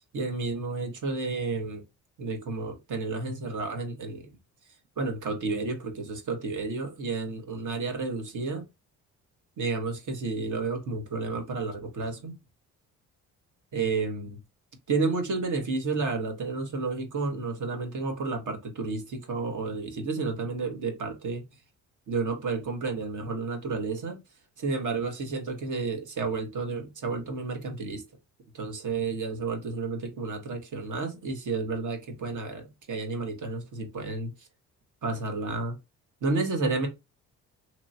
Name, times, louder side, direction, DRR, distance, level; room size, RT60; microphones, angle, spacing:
voice 1, 0.1-1.8 2.2-4.2 5.0-8.6 9.6-12.3 13.7-14.4 14.9-21.4 22.1-24.2 24.6-28.0 28.5-34.3 35.0-35.7 36.2-36.9, right 3 dB, 50° right, 1.4 m, -31 dB
3.0 x 2.8 x 2.8 m
supercardioid pair, 60°, 37 cm